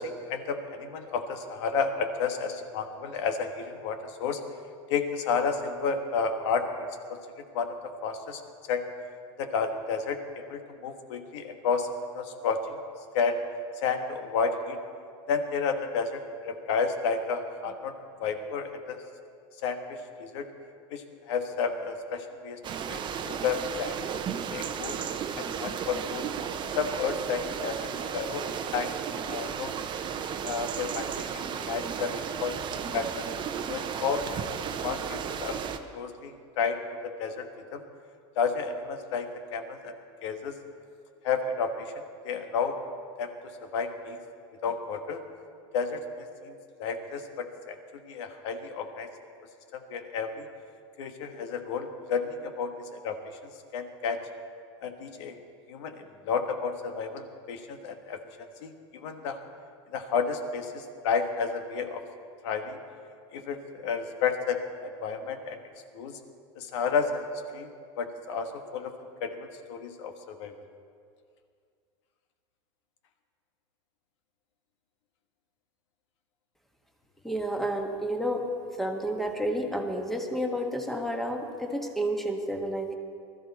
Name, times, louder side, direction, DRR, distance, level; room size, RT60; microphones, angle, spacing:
voice 1, 0.0-4.4 4.9-6.7 7.5-7.8 8.0-8.4 8.7-8.8 9.4-10.2 10.5-11.9 12.1-12.8 13.1-13.4 13.8-14.8 15.3-17.9 18.2-19.0 19.6-20.5 20.9-22.6 22.9-24.0 24.5-25.0 25.4-26.3 26.7-28.4 28.7-28.9 29.3-29.7 30.4-32.6 32.9-33.3 33.7-34.4 34.8-35.6 35.9-37.4 37.7-37.8 38.3-39.9 40.2-40.6 41.2-41.9 42.2-42.8 43.2-43.3 43.6-44.2 44.6-45.2 45.7-49.1 49.7-50.4 51.0-53.2 53.7-54.2 54.8-55.4 55.7-56.0 56.3-59.4 59.9-62.0 62.4-62.8 63.3-65.6 65.9-66.2 66.5-67.3 67.5-67.7 68.0-68.9 69.2-70.5, left 5 dB, 75° left, 6 dB, 1.5 m, -31 dB
sound 1, 22.6-35.8, right 7 dB, 30° right, 0.8 m, -34 dB
voice 2, 77.2-78.4 78.8-82.9, right 1 dB, ahead, 3 dB, 1.5 m, -30 dB
20.0 x 13.5 x 4.2 m, 2.3 s
supercardioid pair, 125°, 15 cm